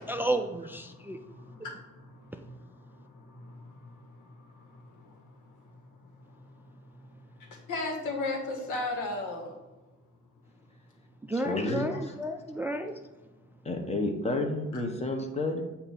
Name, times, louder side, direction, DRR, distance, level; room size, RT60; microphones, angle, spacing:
voice 1, 0.0-1.2 2.3-2.4 11.2-13.0, right 1 dB, 5° right, 6 dB, 0.4 m, -32 dB
voice 2, 0.9-9.6 11.4-12.0 14.7-14.8, left 2 dB, 85° left, 2 dB, 1.6 m, -39 dB
voice 3, 11.3-12.1 13.6-15.6, left 2 dB, 20° left, 3 dB, 1.2 m, -30 dB
8.2 x 2.9 x 5.4 m, 1.1 s
cardioid pair, 90°, 30 cm